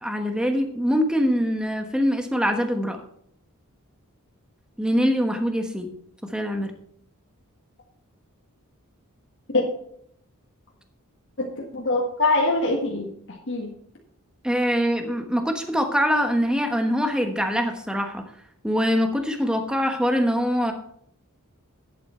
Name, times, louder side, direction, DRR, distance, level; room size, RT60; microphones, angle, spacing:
voice 1, 0.0-3.0 4.8-5.9 6.3-6.7 14.4-18.2 18.6-20.7, equal, 5° right, 5 dB, 1.1 m, -23 dB
voice 2, 11.4-13.7, left 2 dB, 55° left, -1 dB, 1.6 m, -24 dB
11.0 x 8.5 x 4.4 m, 0.68 s
head